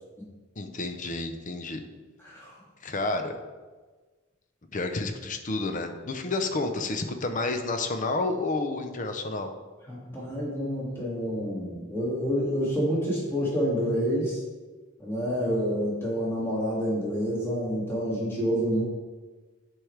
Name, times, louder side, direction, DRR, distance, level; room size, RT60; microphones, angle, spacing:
voice 1, 0.6-1.8 2.8-3.3 4.7-9.5, left 3 dB, 35° left, 6 dB, 0.6 m, -30 dB
voice 2, 2.2-2.5 9.9-14.4 15.0-18.8, equal, 10° left, -7 dB, 2.2 m, -28 dB
10.0 x 4.6 x 3.3 m, 1.3 s
head